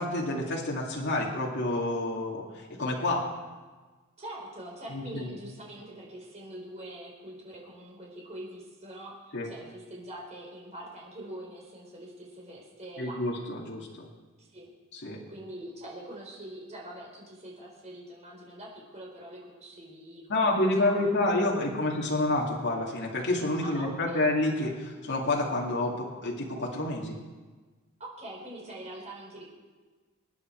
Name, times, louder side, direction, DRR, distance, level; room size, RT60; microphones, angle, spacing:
voice 1, 0.0-3.2 4.9-5.3 9.3-9.5 13.0-14.1 15.0-15.2 20.3-27.2, left 2 dB, 55° left, -2 dB, 2.4 m, -28 dB
voice 2, 4.2-13.2 14.4-14.7 15.3-21.1 21.5-21.9 23.6-24.3 28.0-29.4, right 1 dB, 35° right, -2 dB, 4.2 m, -44 dB
25.0 x 9.7 x 4.6 m, 1.3 s
head